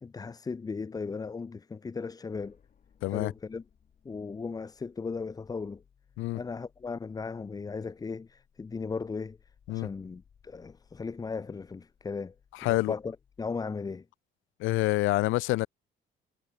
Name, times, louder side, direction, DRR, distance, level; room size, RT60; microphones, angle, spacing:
voice 1, 0.0-2.6 3.1-3.6 4.0-5.8 6.3-9.4 9.7-12.3 12.6-14.1, left 4 dB, 20° left, 0.6 m, -37 dB
sound 1, 2.3-13.6, left 7 dB, 40° left, 5.2 m, -65 dB
voice 2, 3.0-3.3 6.2-6.4 9.7-9.9 12.6-12.9 14.6-15.7, left 19 dB, 80° left, 0.5 m, -27 dB
cardioid pair, 130°, 20 cm